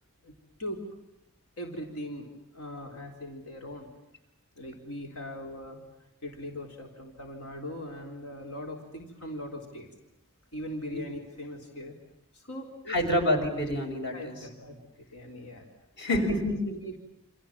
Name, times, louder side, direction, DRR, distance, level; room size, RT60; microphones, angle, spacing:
voice 1, 1.6-3.9 4.6-5.8 6.2-9.9 10.5-11.9 12.3-13.0 14.1-14.8 15.1-15.6 16.0-16.4 16.7-17.0, left 1 dB, 85° left, 2 dB, 4.1 m, -40 dB
voice 2, 12.9-14.5 16.0-16.6, left 1 dB, 55° left, 5 dB, 6.2 m, -27 dB
29.5 x 27.0 x 7.4 m, 0.87 s
head